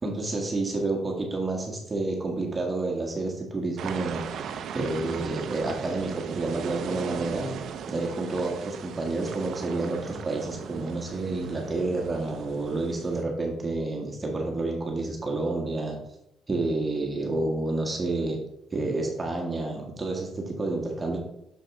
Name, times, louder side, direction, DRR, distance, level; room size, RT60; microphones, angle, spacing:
voice 1, 0.0-7.5 7.9-16.0 16.5-18.4 18.7-21.2, right 2 dB, 25° right, 0 dB, 1.4 m, -29 dB
sound 1, 3.8-13.2, right 7 dB, 70° right, 0.5 m, -38 dB
6.5 x 5.2 x 3.6 m, 0.81 s
cardioid pair, 90°, 0 cm